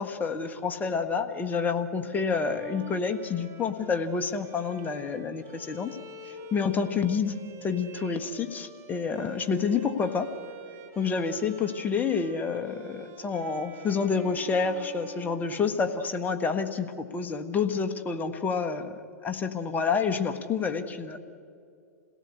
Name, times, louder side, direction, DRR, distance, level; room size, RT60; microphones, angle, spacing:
voice 1, 0.0-6.0 6.5-7.3 7.6-10.3 11.0-21.2, left 5 dB, 20° left, 7 dB, 1.5 m, -28 dB
Bowed string instrument, 2.3-16.2, right 3 dB, 35° right, 2.6 m, -47 dB
28.5 x 17.5 x 8.4 m, 2.3 s
hypercardioid pair, 110°, 9 cm